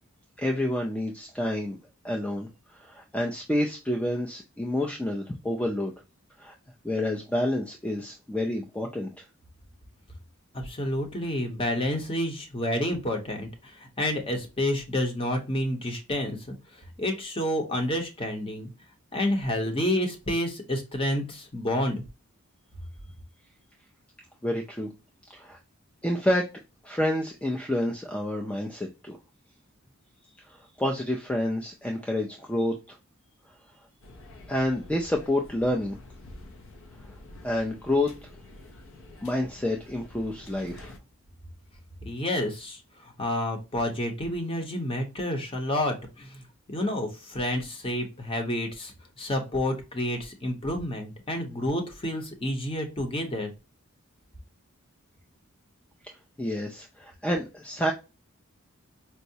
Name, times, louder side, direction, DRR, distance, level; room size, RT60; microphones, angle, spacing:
voice 1, 0.4-1.8 2.0-5.9 6.4-6.5 6.8-9.2 24.4-24.9 25.3-25.6 26.0-26.5 26.8-29.2 30.5-33.0 34.5-36.0 37.4-38.1 39.2-40.9 56.0-57.9, left 1 dB, 5° left, 1 dB, 0.3 m, -29 dB
voice 2, 10.5-18.7 19.1-22.0 42.0-46.4 46.7-53.5, left 1 dB, 25° left, 4 dB, 0.8 m, -29 dB
sound 1, 34.0-41.0, left 2 dB, 65° left, 0.6 m, -48 dB
4.5 x 2.0 x 2.6 m, 0.29 s
head